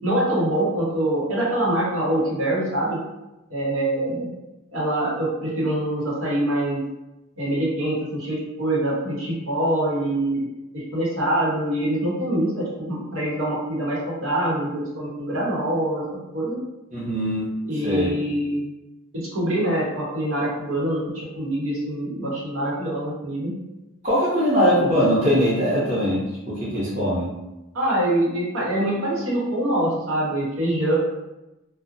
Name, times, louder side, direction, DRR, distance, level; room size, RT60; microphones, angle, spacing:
voice 1, 0.0-3.0 3.5-4.3 4.7-6.8 7.4-10.5 10.7-16.0 16.3-16.6 17.6-18.6 19.1-21.0 21.4-23.5 27.7-30.9, right 1 dB, 75° right, -6 dB, 0.9 m, -24 dB
voice 2, 16.9-17.6 17.8-18.1 24.0-27.3, equal, 35° right, -8 dB, 0.7 m, -21 dB
2.5 x 2.1 x 2.5 m, 0.98 s
head